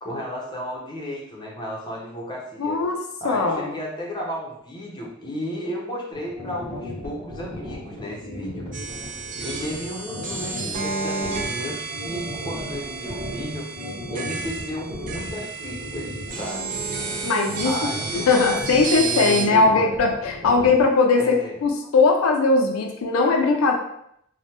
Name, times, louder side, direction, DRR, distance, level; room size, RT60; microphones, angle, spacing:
voice 1, 0.0-2.8 3.2-8.6 9.0-13.7 14.1-16.8 17.6-18.6 19.0-19.8 21.2-21.9, equal, 20° left, -3 dB, 0.6 m, -33 dB
voice 2, 2.6-3.0 3.2-3.7 17.2-17.7 18.1-21.2 21.6-23.7, left 3 dB, 75° left, 3 dB, 0.4 m, -19 dB
sound 1, 6.1-20.8, equal, 10° right, 1.2 m, -36 dB
sound 2, 8.7-19.5, right 4 dB, 40° right, 0.4 m, -31 dB
3.1 x 2.1 x 2.8 m, 0.74 s
head